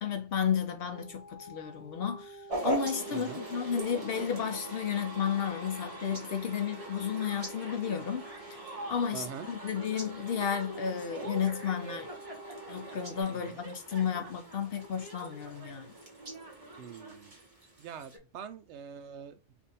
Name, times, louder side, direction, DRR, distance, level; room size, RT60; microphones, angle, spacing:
voice 1, 0.0-8.2 8.9-12.1 12.7-15.9, left 7 dB, 65° left, 0.7 m, -32 dB
sound 1, 0.9-13.2, right 1 dB, 5° right, 1.0 m, -50 dB
sound 2, 2.5-18.2, right 1 dB, 30° right, 1.1 m, -41 dB
voice 2, 3.1-3.4 9.1-9.5 13.3-13.6 16.8-17.3 17.8-19.4, right 7 dB, 70° right, 0.8 m, -44 dB
3.5 x 2.5 x 4.0 m
omnidirectional pair, 1.3 m